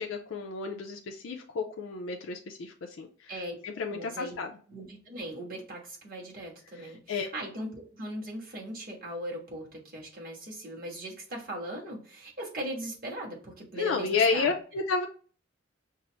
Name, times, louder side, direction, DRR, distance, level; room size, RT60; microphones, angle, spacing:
voice 1, 0.0-3.3 3.6-4.5 6.8-7.3 13.8-15.1, left 4 dB, 75° left, 3 dB, 0.4 m, -31 dB
voice 2, 3.9-4.4 4.7-14.5, right 1 dB, 50° right, -2 dB, 1.4 m, -39 dB
5.4 x 2.0 x 2.9 m, 0.42 s
head